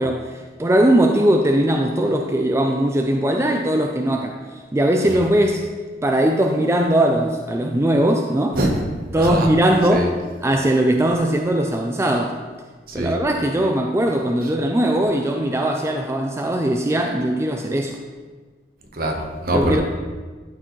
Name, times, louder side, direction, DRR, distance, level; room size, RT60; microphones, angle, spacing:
voice 1, 0.0-4.4 4.7-5.6 6.0-8.6 9.1-10.1 10.4-12.4 12.9-18.0 19.5-19.8, right 1 dB, 15° right, 2 dB, 0.4 m, -19 dB
voice 2, 8.5-8.8 9.1-9.5 9.9-10.1 12.9-13.2 18.9-19.8, right 1 dB, 55° right, 2 dB, 1.0 m, -23 dB
12.0 x 4.7 x 3.1 m, 1.4 s
head